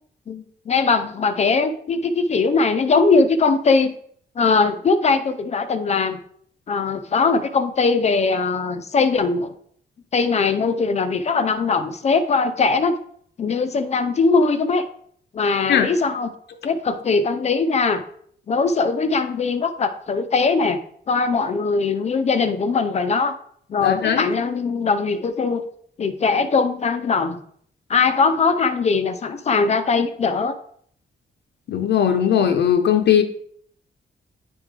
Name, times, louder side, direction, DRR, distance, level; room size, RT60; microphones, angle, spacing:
voice 1, 0.3-3.9 4.4-6.2 6.7-9.5 10.1-13.0 13.4-14.9 15.3-16.3 16.6-18.0 18.5-20.8 21.1-23.4 23.7-25.6 26.0-27.4 27.9-30.5, left 4 dB, 40° left, 9 dB, 0.4 m, -20 dB
voice 2, 23.8-24.3 31.7-33.2, left 9 dB, 75° left, 5 dB, 0.7 m, -18 dB
9.8 x 3.6 x 3.3 m, 0.62 s
wide cardioid pair, 170°, 18 cm